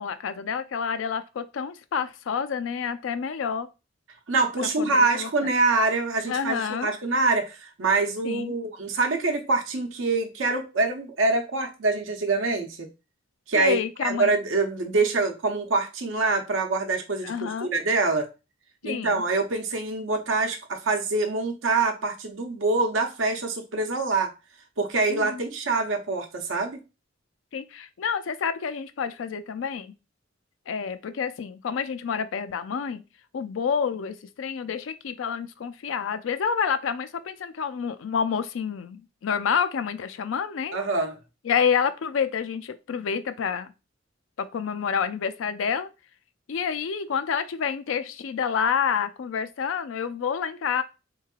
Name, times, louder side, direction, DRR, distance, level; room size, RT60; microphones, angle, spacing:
voice 1, 0.0-3.7 4.6-5.3 6.3-6.9 8.2-8.5 13.5-14.3 17.2-17.7 18.8-19.2 25.1-25.4 27.5-29.9 30.7-33.0 33.3-40.8 41.4-43.7 44.4-45.9 46.5-50.8, left 7 dB, 80° left, 0.4 m, -28 dB
voice 2, 4.3-12.9 13.5-18.3 18.8-24.3 24.8-26.8 40.7-41.1, right 3 dB, 80° right, 0.7 m, -25 dB
3.7 x 3.1 x 2.3 m
head